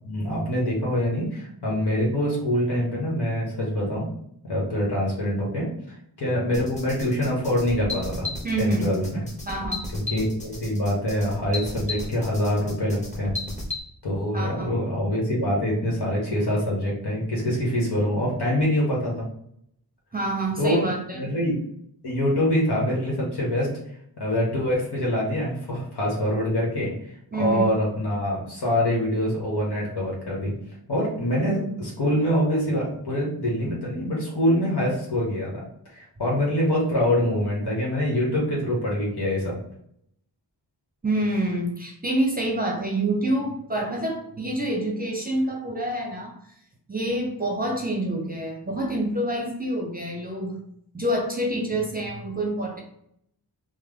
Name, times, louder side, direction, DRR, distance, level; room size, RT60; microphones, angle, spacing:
voice 1, 0.0-4.1 4.4-5.7 6.2-8.3 8.6-9.2 9.9-13.4 14.0-19.3 20.6-21.6 22.0-23.7 24.2-30.6 30.9-35.6 35.9-39.6, equal, 65° left, -4 dB, 1.3 m, -25 dB
sound 1, 6.5-13.8, left 2 dB, 15° left, 1.2 m, -34 dB
voice 2, 8.4-8.9 9.5-9.9 14.3-14.7 20.1-21.2 27.3-27.7 41.0-46.4 46.9-50.6 50.9-52.8, right 1 dB, 20° right, 0 dB, 0.7 m, -27 dB
3.3 x 2.1 x 3.4 m, 0.71 s
cardioid pair, 50°, 43 cm